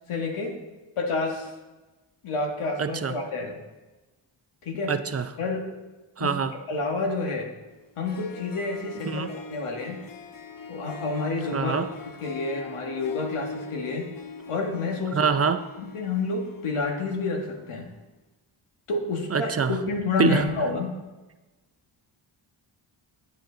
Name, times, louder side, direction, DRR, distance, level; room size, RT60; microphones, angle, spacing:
voice 1, 0.1-0.5 1.0-1.5 2.2-3.6 4.6-4.9 5.4-5.6 6.2-6.3 6.7-7.5 8.0-10.0 10.7-11.7 12.2-14.1 14.5-15.3 15.8-17.9 18.9-20.9, left 3 dB, 85° left, 1 dB, 1.6 m, -29 dB
voice 2, 2.8-3.1 4.9-5.3 6.2-6.5 9.1-9.3 11.5-11.9 15.1-15.6 19.3-19.8 20.2-20.4, right 6 dB, 30° right, 10 dB, 0.6 m, -24 dB
Harp, 7.8-7.9 8.1-17.6, left 4 dB, 45° left, 0.8 m, -42 dB
9.3 x 7.9 x 3.9 m, 1.1 s
cardioid pair, 75°, 49 cm